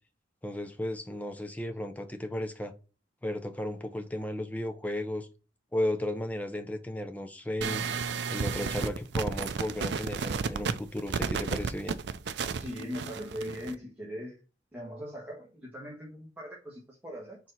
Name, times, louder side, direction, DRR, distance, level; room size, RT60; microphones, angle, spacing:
voice 1, 0.4-2.7 3.2-5.3 5.7-7.8 8.3-12.0, left 1 dB, 10° left, 0.6 m, -34 dB
sound 1, 7.6-13.7, right 5 dB, 65° right, 0.5 m, -32 dB
voice 2, 12.6-14.4 14.7-17.4, equal, 10° right, 1.4 m, -40 dB
4.6 x 4.0 x 5.5 m
head